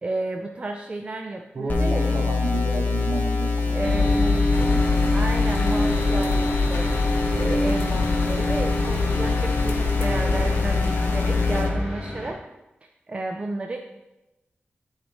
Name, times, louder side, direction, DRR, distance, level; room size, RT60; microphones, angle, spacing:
voice 1, 0.0-2.3 3.7-4.1 5.1-7.0 7.3-12.4 12.8-13.8, right 2 dB, 30° right, 3 dB, 0.4 m, -32 dB
voice 2, 1.5-4.9, right 3 dB, 60° right, 2 dB, 1.1 m, -32 dB
sound 1, 1.7-11.7, left 4 dB, 50° left, 1.3 m, -25 dB
sound 2, 3.8-12.3, left 2 dB, 10° left, 2.8 m, -25 dB
sound 3, 4.5-11.6, left 2 dB, 85° left, 0.7 m, -31 dB
11.0 x 4.0 x 3.5 m, 0.98 s
wide cardioid pair, 140°, 4 cm